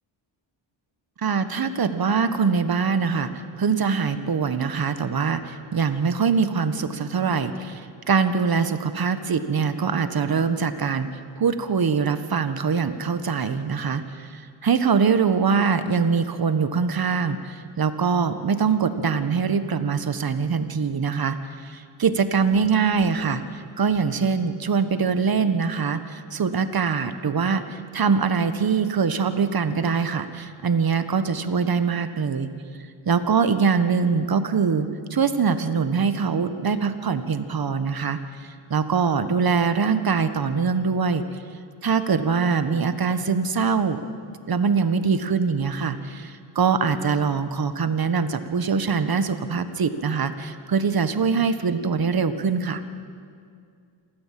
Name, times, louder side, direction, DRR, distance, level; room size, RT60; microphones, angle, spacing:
voice 1, 1.2-3.3 3.6-11.1 11.4-21.4 21.6-23.4 23.8-32.5 33.0-38.2 38.7-41.2 41.8-44.0 44.5-52.8, right 5 dB, 50° right, 10 dB, 1.5 m, -23 dB
27.5 x 13.5 x 7.7 m, 2.3 s
cardioid pair, 85°, 48 cm